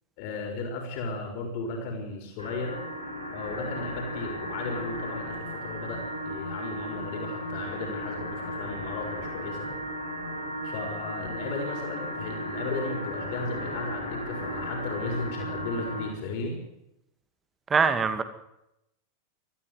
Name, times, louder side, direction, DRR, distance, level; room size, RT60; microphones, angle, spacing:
voice 1, 0.2-2.8 3.3-9.7 10.6-16.6, left 3 dB, 45° left, 2 dB, 4.9 m, -35 dB
sound 1, 2.4-16.1, equal, 90° left, 5.8 m, -35 dB
voice 2, 17.7-18.2, right 5 dB, 20° right, 10 dB, 2.3 m, -22 dB
21.5 x 14.0 x 9.5 m, 0.87 s
figure-of-eight pair, 90°, 0 cm